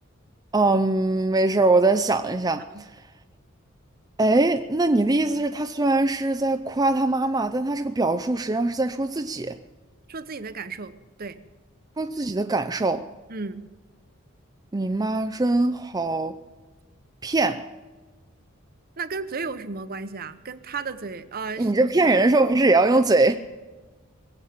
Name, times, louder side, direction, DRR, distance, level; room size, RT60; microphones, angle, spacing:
voice 1, 0.5-3.0 4.2-9.6 12.0-13.1 14.7-16.4 17.2-17.7 21.6-23.4, right 2 dB, 20° right, 0.5 m, -22 dB
voice 2, 10.1-10.9 11.2-11.4 13.3-13.7 19.0-21.7, right 4 dB, 45° right, 0.9 m, -33 dB
21.5 x 8.1 x 7.4 m
head